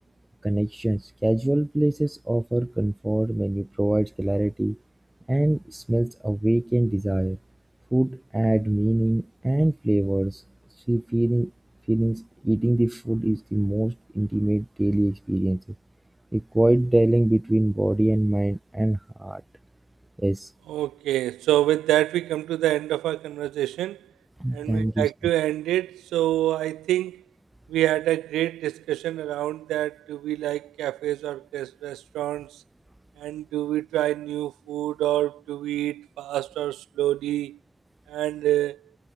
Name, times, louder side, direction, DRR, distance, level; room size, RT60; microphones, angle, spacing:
voice 1, 0.4-4.8 5.3-7.4 7.9-10.4 10.9-11.5 11.9-15.6 16.3-19.4 20.2-20.5 24.4-25.1, right 1 dB, 5° right, 0.9 m, -24 dB
voice 2, 20.7-24.0 24.5-27.2 27.7-32.6 33.2-37.6 38.1-38.8, right 14 dB, 55° right, 4.2 m, -26 dB
figure-of-eight pair, 60°, 0 cm